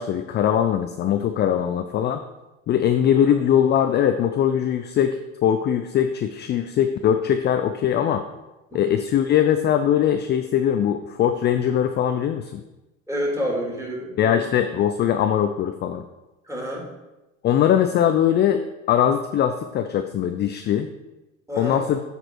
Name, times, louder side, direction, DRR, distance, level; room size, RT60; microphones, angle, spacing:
voice 1, 0.0-2.2 2.7-8.2 8.7-12.6 14.2-16.0 17.4-18.6 18.9-20.9 21.6-22.0, left 9 dB, 30° left, 7 dB, 0.4 m, -21 dB
voice 2, 13.1-14.1 16.4-16.9 21.5-21.8, equal, 5° right, -3 dB, 2.8 m, -28 dB
8.1 x 4.2 x 4.5 m, 1.0 s
hypercardioid pair, 80°, 40 cm